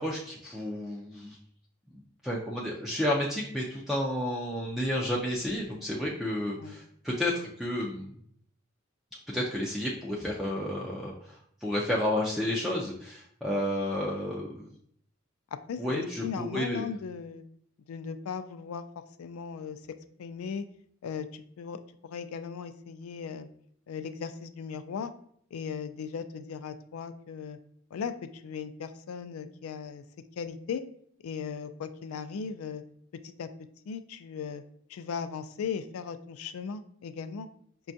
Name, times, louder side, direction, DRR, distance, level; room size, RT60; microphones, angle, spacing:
voice 1, 0.0-1.4 2.2-8.1 9.3-11.4 11.6-14.7 15.8-16.9, left 1 dB, ahead, -4 dB, 0.3 m, -31 dB
voice 2, 15.7-17.4 17.9-18.8 19.2-19.8 20.2-20.6 21.0-23.5 23.9-25.1 25.5-27.6 27.9-30.0 30.4-30.8 31.2-32.8 33.2-33.5 33.9-34.6 34.9-37.5, left 6 dB, 85° left, 11 dB, 0.3 m, -37 dB
5.1 x 2.3 x 2.6 m, 0.65 s
head